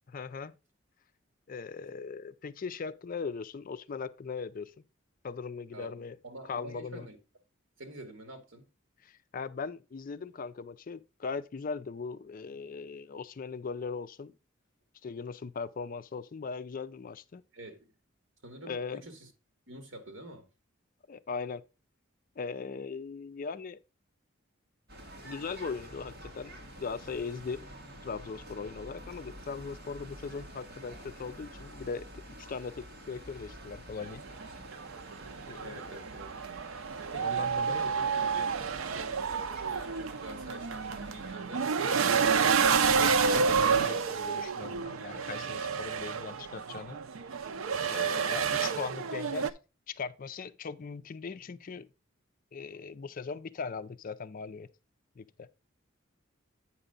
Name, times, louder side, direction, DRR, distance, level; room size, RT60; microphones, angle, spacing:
voice 1, 0.1-0.5 1.5-4.7 5.2-6.2 6.4-7.1 9.0-14.3 15.0-17.4 18.6-19.0 21.1-21.6 22.4-23.8 25.2-27.6 28.0-32.1 32.5-34.2 35.5-35.8 37.2-37.8 42.8-47.0 47.9-49.5 49.9-51.9 52.5-54.7 55.2-55.5, left 5 dB, 40° left, 0.4 m, -39 dB
voice 2, 6.2-7.2 7.8-8.7 17.5-17.9 18.4-19.3 19.7-20.4 35.6-36.4 37.1-38.5 38.7-42.5 45.3-45.4, right 1 dB, 70° right, 1.9 m, -47 dB
sound 1, 24.9-41.4, right 1 dB, 50° right, 1.8 m, -48 dB
sound 2, 34.0-49.5, right 6 dB, 85° right, 0.6 m, -29 dB
8.8 x 5.6 x 3.8 m
head